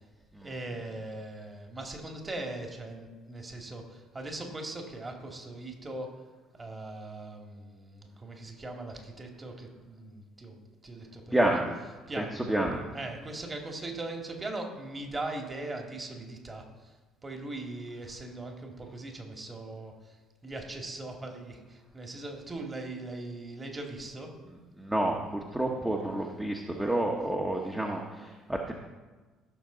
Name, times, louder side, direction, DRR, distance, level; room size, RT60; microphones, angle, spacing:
voice 1, 0.4-6.1 6.6-10.6 10.8-11.6 12.1-12.4 12.9-16.9 17.2-20.2 20.4-24.3 26.7-27.0, right 2 dB, 25° right, 2 dB, 2.4 m, -40 dB
voice 2, 11.3-11.6 12.2-12.8 24.8-28.7, right 1 dB, 10° right, 0 dB, 1.4 m, -29 dB
15.5 x 6.6 x 4.0 m, 1.3 s
hypercardioid pair, 55°, 0 cm